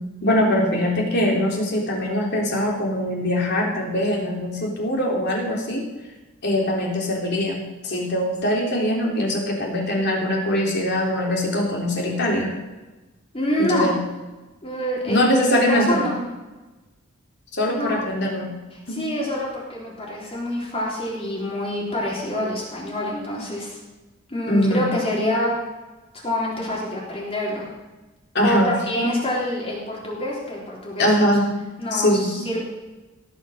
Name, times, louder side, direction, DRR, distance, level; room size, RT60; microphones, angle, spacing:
voice 1, 0.2-5.9 6.4-12.5 13.6-14.0 15.1-16.1 17.6-18.6 18.9-19.0 24.5-24.9 28.3-28.7 28.9-29.1 31.0-31.7 31.9-32.5, left 1 dB, 50° left, -2 dB, 3.6 m, -22 dB
voice 2, 13.3-13.9 14.6-16.1 17.7-18.0 18.7-23.8 24.3-25.6 26.2-27.7 28.4-31.1 31.8-32.6, left 1 dB, 30° left, -5 dB, 3.6 m, -26 dB
18.0 x 6.4 x 6.5 m, 1.1 s
head